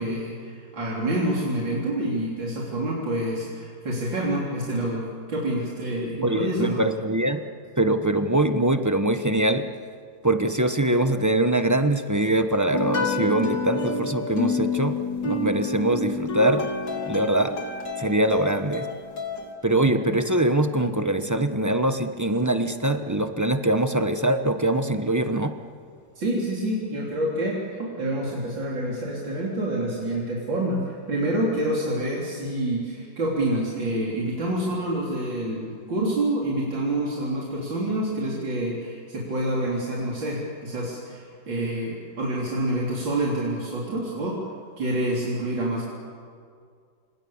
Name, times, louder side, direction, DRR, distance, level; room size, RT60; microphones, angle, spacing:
voice 1, 0.0-6.8 19.8-19.9 26.2-44.4 44.8-45.9, right 1 dB, 90° right, -4 dB, 4.4 m, -27 dB
voice 2, 6.2-7.4 7.8-9.7 10.2-15.0 15.2-16.7 17.1-17.6 18.0-18.9 19.6-25.6, right 1 dB, 15° right, 8 dB, 0.8 m, -23 dB
sound 1, 12.7-19.5, left 3 dB, 75° left, 3.5 m, -29 dB
29.0 x 26.5 x 7.3 m, 2.2 s
omnidirectional pair, 2.0 m